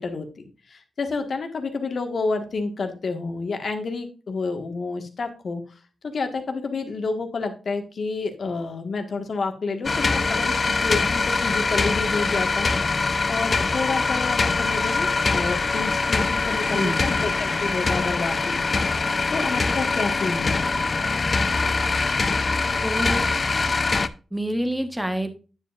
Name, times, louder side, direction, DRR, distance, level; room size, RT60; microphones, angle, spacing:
voice 1, 0.0-5.6 6.0-12.7 13.3-20.8, left 4 dB, 55° left, 6 dB, 1.5 m, -29 dB
sound 1, 9.8-24.1, left 4 dB, 40° left, 0.5 m, -23 dB
voice 2, 16.7-17.1 22.8-23.3 24.3-25.4, right 1 dB, 5° right, 8 dB, 1.2 m, -27 dB
9.6 x 7.2 x 2.5 m, 0.34 s
wide cardioid pair, 105°, 0 cm